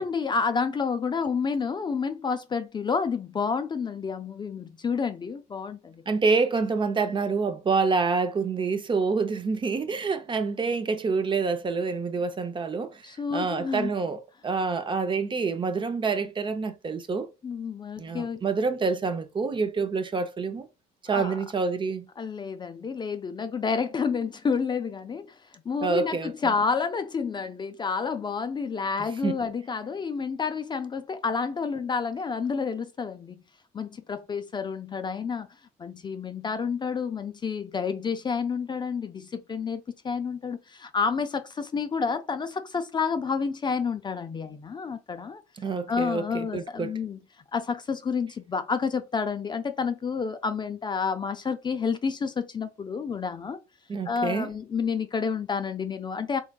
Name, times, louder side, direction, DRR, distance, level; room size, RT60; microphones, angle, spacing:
voice 1, 0.0-6.0 13.0-13.9 17.4-18.4 21.1-21.4 22.2-25.4 25.7-33.4 33.7-35.5 35.8-45.4 45.9-47.2 47.5-53.6 54.1-56.4, left 5 dB, 25° left, 0.4 m, -29 dB
voice 2, 6.1-13.0 13.3-17.3 18.0-20.7 21.1-22.1 25.8-26.5 29.2-29.4 45.6-46.9 53.9-54.5, right 4 dB, 30° right, 0.6 m, -27 dB
3.7 x 3.5 x 2.3 m
cardioid pair, 110°, 17 cm